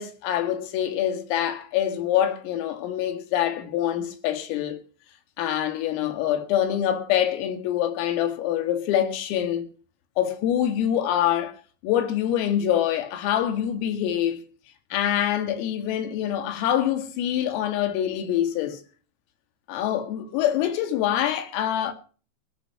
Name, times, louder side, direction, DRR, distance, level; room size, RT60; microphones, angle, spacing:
voice 1, 0.0-4.8 5.4-9.7 10.2-11.5 11.8-14.4 14.9-18.8 19.7-21.9, left 10 dB, 90° left, 4.5 m, -25 dB
17.5 x 11.5 x 5.8 m
omnidirectional pair, 5.8 m